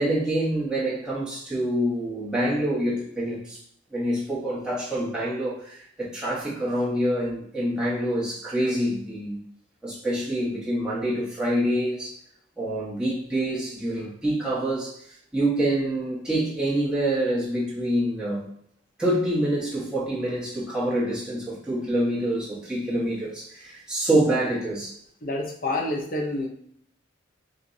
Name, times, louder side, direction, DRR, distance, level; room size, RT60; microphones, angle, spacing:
voice 1, 0.0-3.6 3.9-9.4 9.8-12.2 12.6-18.4 19.0-25.0, right 1 dB, 5° right, -7 dB, 1.3 m, -26 dB
voice 2, 25.2-26.5, left 2 dB, 45° left, 1 dB, 0.9 m, -28 dB
7.5 x 2.6 x 2.7 m, 0.67 s
head